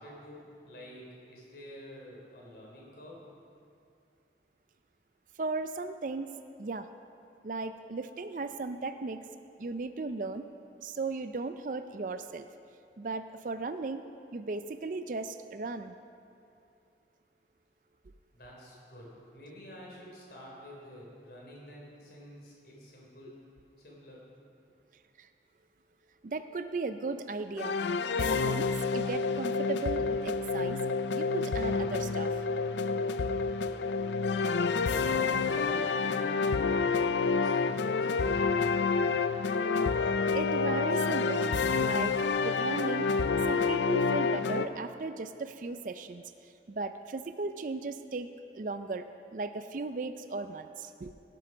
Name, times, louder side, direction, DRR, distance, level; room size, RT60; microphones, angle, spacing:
voice 1, 0.0-3.3 18.3-23.4 23.8-24.2 34.4-38.1, equal, 65° left, -3 dB, 3.6 m, -48 dB
voice 2, 5.4-6.3 6.6-6.9 7.4-9.3 9.6-10.5 10.8-12.5 13.0-14.0 14.3-15.9 25.2-25.3 26.2-27.8 28.2-30.8 31.1-32.4 40.0-41.5 41.8-43.1 43.5-49.1 49.3-51.1, right 3 dB, 45° right, 10 dB, 0.4 m, -36 dB
sound 1, 27.6-44.7, left 4 dB, 85° left, 0.4 m, -28 dB
17.0 x 7.8 x 6.0 m, 2.5 s
head